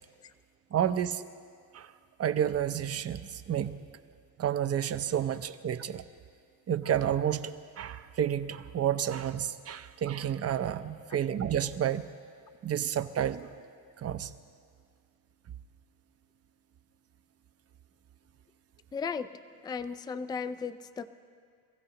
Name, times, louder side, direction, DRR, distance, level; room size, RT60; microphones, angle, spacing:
voice 1, 0.7-1.2 1.7-1.9 2.2-3.8 4.4-6.0 6.7-12.0 12.6-13.5 14.0-14.3, right 9 dB, 40° right, 11 dB, 0.6 m, -30 dB
voice 2, 18.9-19.3 19.6-21.1, left 5 dB, 10° left, 12 dB, 0.4 m, -35 dB
28.5 x 15.5 x 2.9 m, 2.1 s
cardioid pair, 115°, 36 cm